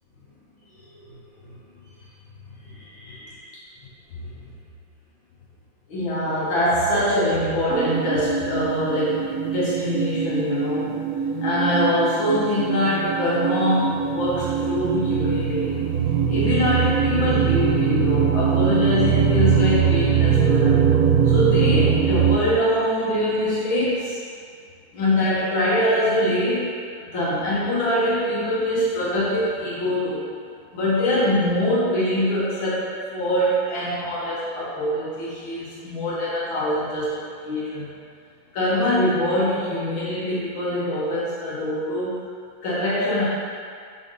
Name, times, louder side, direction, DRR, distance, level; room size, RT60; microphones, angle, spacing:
voice 1, 2.6-3.5 4.2-4.3 5.9-9.2 9.5-10.9 11.4-15.8 16.3-20.8 21.2-24.2 24.9-26.8 27.1-30.2 30.7-37.9 38.5-42.2 42.6-43.2, left 1 dB, 85° left, -9 dB, 2.1 m, -23 dB
sound 1, 7.7-22.4, right 7 dB, 70° right, 0.9 m, -22 dB
5.7 x 5.1 x 3.9 m, 2.2 s
omnidirectional pair, 2.1 m